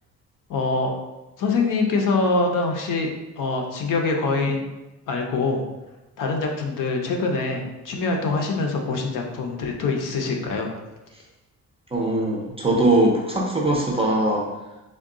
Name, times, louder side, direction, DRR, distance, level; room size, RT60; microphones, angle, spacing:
voice 1, 0.5-0.9 1.4-3.1 3.4-4.6 5.1-5.6 6.2-10.7, left 3 dB, 65° left, 2 dB, 0.7 m, -24 dB
voice 2, 11.9-14.5, right 1 dB, 15° right, -2 dB, 0.5 m, -21 dB
3.6 x 2.3 x 3.7 m, 1.0 s
cardioid pair, 155°, 34 cm